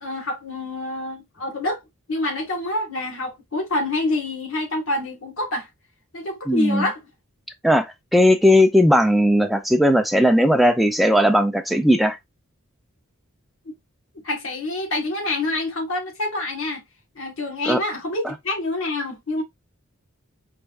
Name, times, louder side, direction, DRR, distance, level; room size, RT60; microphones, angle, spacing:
voice 1, 0.0-1.8 2.1-5.7 6.1-7.0 13.7-13.8 14.2-16.8 17.2-19.4, left 2 dB, 70° left, 1.8 m, -27 dB
voice 2, 6.5-6.9 7.6-12.2 17.7-17.8, equal, ahead, 0.6 m, -17 dB
4.5 x 3.5 x 2.6 m
head